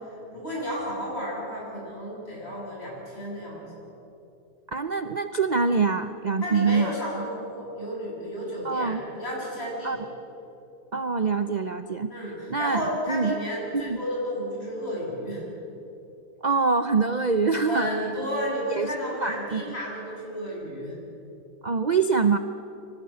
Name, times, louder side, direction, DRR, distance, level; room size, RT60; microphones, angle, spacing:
voice 1, 0.3-3.9 6.4-10.0 12.1-15.4 17.7-21.0, equal, 35° left, -4 dB, 7.2 m, -32 dB
voice 2, 4.7-6.9 8.6-9.0 9.8-10.0 10.9-12.1 12.5-12.8 13.1-13.3 13.8-14.0 16.4-17.9 18.7-18.9 19.2-19.6 21.6-22.4, right 4 dB, 55° right, 10 dB, 0.4 m, -24 dB
24.0 x 18.0 x 8.6 m, 3.0 s
omnidirectional pair, 1.7 m